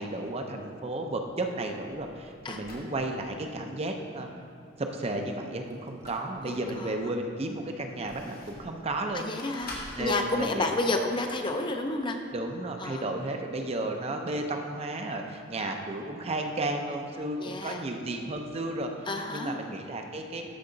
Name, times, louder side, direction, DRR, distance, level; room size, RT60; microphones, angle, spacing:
voice 1, 0.0-4.3 4.8-9.3 10.0-10.7 12.3-18.9 19.3-20.4, right 2 dB, 30° right, 4 dB, 0.5 m, -33 dB
sound 1, 1.3-2.9 5.7-6.8 7.3-8.8 9.4-10.0, left 2 dB, 50° left, 1.2 m, -45 dB
voice 2, 6.5-6.9 9.1-9.7 10.0-12.2 12.8-13.0 17.4-17.8 19.1-19.6, left 2 dB, 25° left, 4 dB, 0.5 m, -30 dB
13.0 x 4.8 x 3.9 m, 2.4 s
head